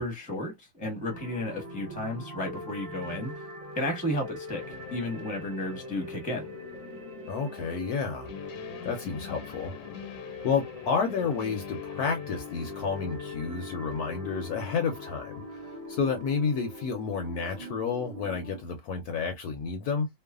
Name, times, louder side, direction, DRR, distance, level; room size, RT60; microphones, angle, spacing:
voice 1, 0.0-3.4 3.8-6.5, left 1 dB, 5° left, 0.6 m, -33 dB
sound 1, 1.1-18.6, left 1 dB, 55° right, 0.4 m, -43 dB
sound 2, 4.5-16.4, left 9 dB, 85° left, 1.4 m, -44 dB
voice 2, 7.3-8.3 8.8-9.7 10.4-20.1, left 5 dB, 70° left, 1.0 m, -30 dB
3.1 x 2.0 x 2.3 m
omnidirectional pair, 2.0 m